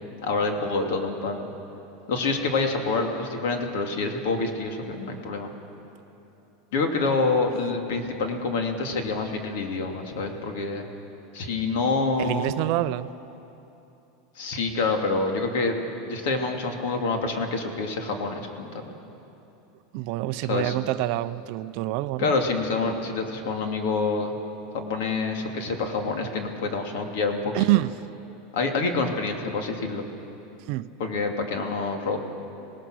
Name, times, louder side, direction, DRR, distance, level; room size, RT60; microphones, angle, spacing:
voice 1, 0.2-1.5 2.1-5.5 6.7-10.8 11.3-12.5 14.4-15.7 16.1-18.9 20.5-20.7 22.2-24.3 24.7-27.7 28.5-30.0 31.0-32.2, left 3 dB, 70° left, 3 dB, 2.6 m, -27 dB
voice 2, 12.2-13.1 19.9-22.3 27.5-28.0 30.7-30.9, right 17 dB, 50° right, 14 dB, 0.5 m, -26 dB
26.5 x 18.5 x 6.3 m, 2.9 s
supercardioid pair, 160°, 0 cm